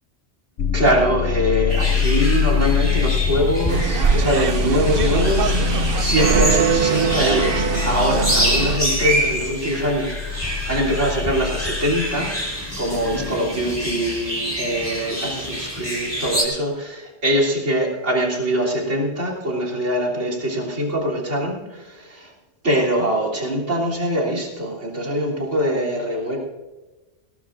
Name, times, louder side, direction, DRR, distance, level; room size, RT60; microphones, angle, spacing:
sound 1, 0.6-13.3, left 8 dB, 55° left, 0.7 m, -25 dB
voice 1, 0.7-22.3 22.6-26.4, equal, 80° right, -1 dB, 3.6 m, -23 dB
sound 2, 1.7-16.4, equal, 10° left, 4.2 m, -27 dB
sound 3, 3.7-8.8, right 6 dB, 55° right, 0.8 m, -22 dB
20.0 x 18.5 x 2.6 m, 1.2 s
omnidirectional pair, 1.2 m